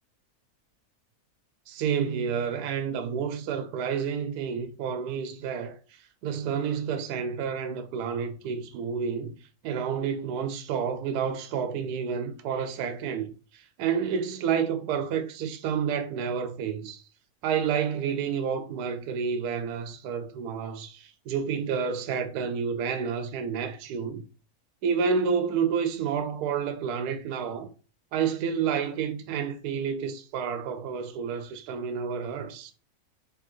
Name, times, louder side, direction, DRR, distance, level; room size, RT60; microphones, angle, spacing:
voice 1, 1.7-9.3 9.6-17.0 17.4-24.2 24.8-27.7 28.1-32.7, right 7 dB, 85° right, 1.1 m, -30 dB
4.6 x 3.2 x 3.0 m
omnidirectional pair, 1.6 m